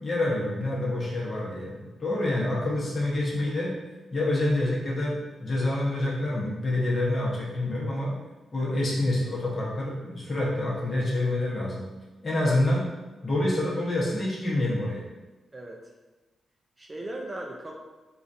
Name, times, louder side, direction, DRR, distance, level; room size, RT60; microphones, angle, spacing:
voice 1, 0.0-3.7 4.1-8.1 8.5-11.8 12.2-12.9 13.2-15.0, left 1 dB, 35° left, -5 dB, 0.9 m, -27 dB
voice 2, 16.8-17.7, right 1 dB, 20° right, 0 dB, 0.3 m, -38 dB
3.7 x 2.4 x 2.6 m, 1.2 s
cardioid pair, 100°, 0 cm